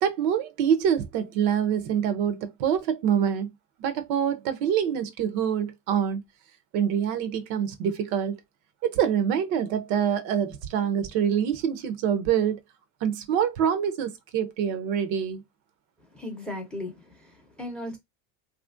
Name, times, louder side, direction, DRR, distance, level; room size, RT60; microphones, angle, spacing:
voice 1, 0.0-3.5 3.8-6.2 6.7-8.4 8.8-12.6 13.0-15.4, right 8 dB, 60° right, 0.7 m, -25 dB
voice 2, 16.0-18.0, left 1 dB, ahead, 0.6 m, -37 dB
3.0 x 2.4 x 2.4 m
supercardioid pair, 125°, 46 cm